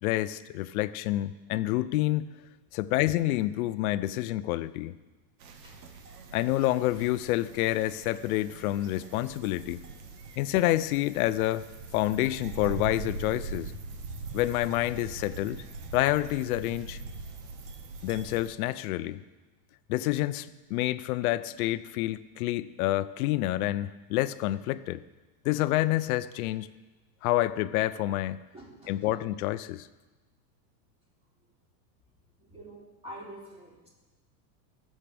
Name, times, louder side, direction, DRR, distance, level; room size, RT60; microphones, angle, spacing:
voice 1, 0.0-2.4 2.7-4.9 6.3-9.8 10.4-11.7 11.9-13.7 14.3-15.6 15.9-17.0 18.0-19.2 19.9-25.0 25.4-26.7 27.2-28.4 28.9-29.9, left 16 dB, 60° left, 15 dB, 0.6 m, -28 dB
sound 1, 5.4-18.5, right 4 dB, 75° right, 1.6 m, -42 dB
voice 2, 28.5-29.0 32.4-33.9, right 1 dB, 10° right, -5 dB, 3.5 m, -46 dB
20.0 x 7.5 x 3.4 m, 1.2 s
supercardioid pair, 130°, 50 cm